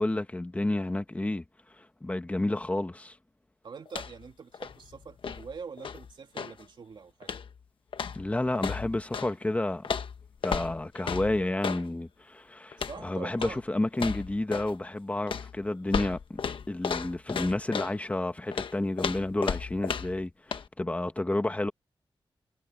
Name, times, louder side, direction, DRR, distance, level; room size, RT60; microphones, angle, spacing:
voice 1, 0.0-1.4 1.7-3.2 8.1-9.9 10.4-16.4 16.7-21.7, left 2 dB, 15° left, 1.5 m, -30 dB
voice 2, 3.6-7.4 12.8-13.6, right 5 dB, 60° right, 2.4 m, -44 dB
sound 1, 3.9-4.3 4.5-6.6 7.2-7.6 7.9-9.3 9.8-11.9 12.7-13.0 13.3-13.6 13.9-14.8 15.3-18.0 18.5-20.2 20.5-20.7, left 6 dB, 70° left, 1.2 m, -34 dB
wide cardioid pair, 145°, 9 cm